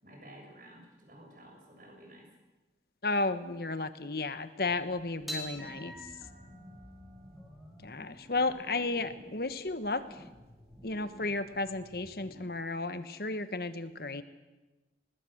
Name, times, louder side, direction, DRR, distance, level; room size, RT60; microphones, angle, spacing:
voice 1, 0.0-2.3, right 1 dB, 50° right, 2 dB, 7.0 m, -52 dB
voice 2, 3.0-5.9 7.8-10.2 10.8-14.2, left 3 dB, 55° left, 12 dB, 1.3 m, -33 dB
sound 1, 4.6-12.4, equal, 15° right, 4.1 m, -54 dB
sound 2, 5.3-11.8, equal, ahead, 4.5 m, -48 dB
21.0 x 20.5 x 7.9 m, 1.1 s
head